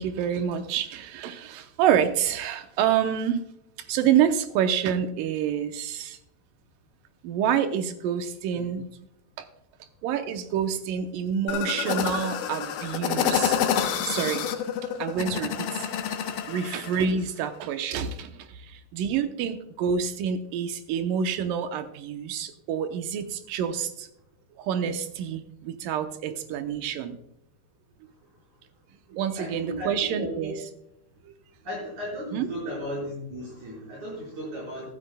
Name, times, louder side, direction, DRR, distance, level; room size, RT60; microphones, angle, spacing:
voice 1, 0.0-3.4 3.8-6.2 7.2-8.9 9.4-9.5 10.0-13.6 14.0-14.5 14.8-15.9 16.3-24.1 24.6-27.2 29.1-30.5 31.3-31.4 32.3-32.5, right 8 dB, 80° right, 8 dB, 1.9 m, -27 dB
sound 1, 11.5-17.1, left 8 dB, 70° left, 2.1 m, -28 dB
voice 2, 29.4-30.6 31.6-34.9, equal, 45° right, -5 dB, 5.7 m, -35 dB
14.0 x 14.0 x 2.2 m, 0.81 s
omnidirectional pair, 4.9 m